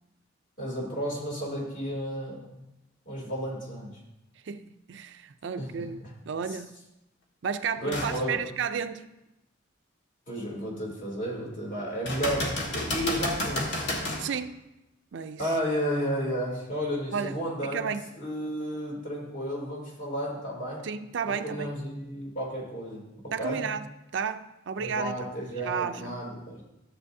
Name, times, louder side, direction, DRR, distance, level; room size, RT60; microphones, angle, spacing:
voice 1, 0.6-2.4 3.1-3.9 5.6-5.9 6.5-6.6 7.8-8.4 10.3-13.9 15.4-20.8 21.2-23.6 24.8-26.6, equal, 45° left, 2.9 m, -32 dB
voice 2, 4.5-6.8 7.4-9.0 14.2-14.6 15.1-15.4 17.1-17.3 17.6-18.0 20.8-21.7 23.3-23.8 24.1-25.2 25.6-26.2, right 6 dB, 65° right, 0.4 m, -32 dB
sound 1, 7.9-8.2 8.8-8.9 12.1-14.3 17.9-18.0, left 1 dB, 65° left, 1.6 m, -30 dB
13.5 x 7.7 x 2.7 m
head